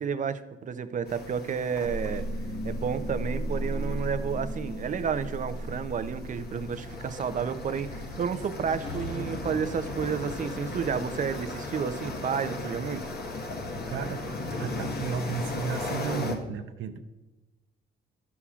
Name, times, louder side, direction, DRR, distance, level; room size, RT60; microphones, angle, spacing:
voice 1, 0.0-2.3 2.6-13.1, right 7 dB, 40° right, 11 dB, 0.6 m, -31 dB
sound 1, 1.1-16.4, left 2 dB, 55° left, 1.3 m, -37 dB
sound 2, 1.8-7.8, equal, 90° left, 1.6 m, -35 dB
sound 3, 8.6-15.4, left 1 dB, 25° left, 1.4 m, -45 dB
voice 2, 13.7-17.0, right 6 dB, 80° right, 6 dB, 0.7 m, -34 dB
11.0 x 7.1 x 2.4 m, 1.1 s
cardioid pair, 90°, 20 cm